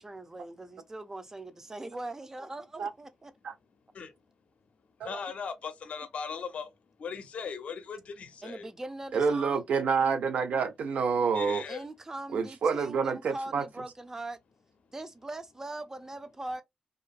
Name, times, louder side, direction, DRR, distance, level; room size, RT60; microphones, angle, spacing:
voice 1, 0.0-3.3 8.4-9.6 11.7-14.4 14.9-16.6, right 2 dB, 20° right, 0.5 m, -41 dB
voice 2, 5.0-6.7 7.0-8.7 11.3-11.8, left 6 dB, 70° left, 0.5 m, -38 dB
voice 3, 9.1-11.6 12.3-13.7, right 5 dB, 85° right, 0.6 m, -28 dB
2.6 x 2.4 x 2.3 m
cardioid pair, 100°, 2 cm